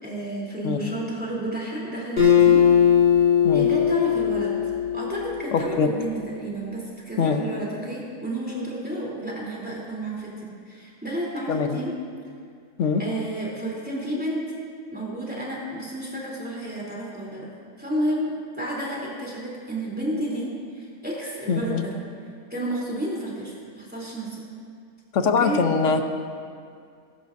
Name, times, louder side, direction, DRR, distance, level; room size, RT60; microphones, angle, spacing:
voice 1, 0.0-2.7 3.5-4.5 4.9-11.9 13.0-14.4 14.9-17.5 17.8-21.9 22.5-24.4 25.4-25.6, right 1 dB, 5° right, -6 dB, 3.1 m, -31 dB
Acoustic guitar, 2.2-5.6, left 9 dB, 40° left, 4.3 m, -19 dB
voice 2, 5.5-5.9 7.2-7.4 11.5-11.8 12.8-13.0 21.5-21.8 25.1-26.0, left 5 dB, 55° left, 6 dB, 1.1 m, -22 dB
22.0 x 12.5 x 2.7 m, 2.3 s
omnidirectional pair, 1.7 m